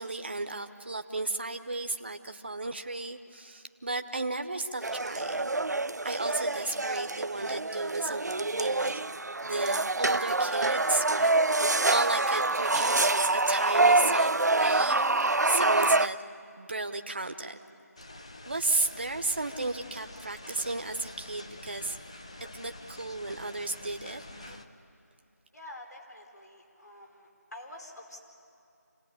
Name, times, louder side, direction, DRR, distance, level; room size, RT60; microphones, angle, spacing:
voice 1, 0.0-5.5 6.0-9.0 9.4-11.6 11.9-16.2 16.6-17.6 18.5-22.0 22.5-24.6, right 2 dB, 40° right, 6 dB, 0.9 m, -34 dB
sound 1, 4.8-16.1, right 2 dB, 85° right, 0.6 m, -26 dB
sound 2, 18.0-24.6, left 2 dB, 20° left, 0.7 m, -46 dB
voice 2, 25.5-28.2, left 1 dB, 80° left, 1 dB, 4.9 m, -47 dB
26.5 x 18.0 x 9.9 m, 2.5 s
figure-of-eight pair, 175°, 9 cm